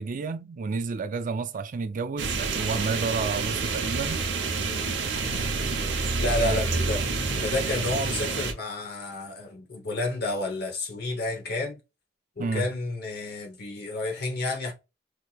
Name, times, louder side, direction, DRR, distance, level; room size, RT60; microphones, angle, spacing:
voice 1, 0.0-4.2 6.4-6.8 12.4-12.7, right 4 dB, 45° right, 0.4 m, -30 dB
sound 1, 2.2-8.5, right 4 dB, 70° right, 0.8 m, -28 dB
voice 2, 4.6-5.0 6.2-7.0 7.4-11.8 12.4-14.7, left 2 dB, 60° left, 0.9 m, -30 dB
4.5 x 2.8 x 2.3 m
head